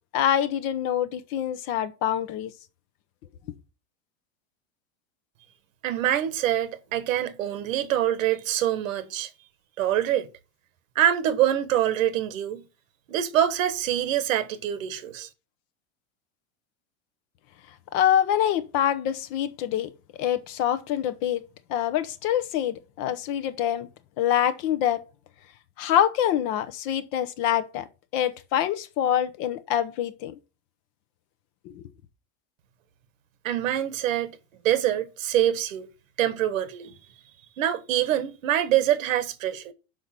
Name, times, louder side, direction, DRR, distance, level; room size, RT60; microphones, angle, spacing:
voice 1, 0.1-2.5 17.9-19.9 20.2-21.4 21.7-23.9 24.2-25.0 25.8-27.9 28.1-30.3 31.6-31.9, left 10 dB, 35° left, 0.7 m, -25 dB
voice 2, 5.8-9.3 9.8-10.3 10.9-12.6 13.1-15.3 33.4-34.4 34.6-35.9 36.2-36.9 37.6-39.7, right 11 dB, 90° right, 1.4 m, -25 dB
6.5 x 5.4 x 5.8 m
supercardioid pair, 170°, 39 cm